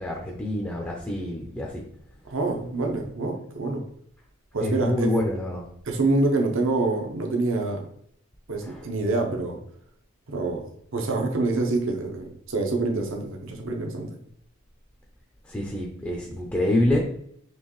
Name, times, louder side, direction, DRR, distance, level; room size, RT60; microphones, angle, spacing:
voice 1, 0.0-1.8 4.6-5.7 8.6-8.8 15.4-17.1, left 1 dB, 10° left, -1 dB, 0.5 m, -26 dB
voice 2, 2.2-3.8 4.5-5.1 5.8-7.9 8.5-9.6 10.3-14.2, right 3 dB, 65° right, 3 dB, 0.7 m, -26 dB
4.5 x 3.1 x 3.0 m, 0.69 s
head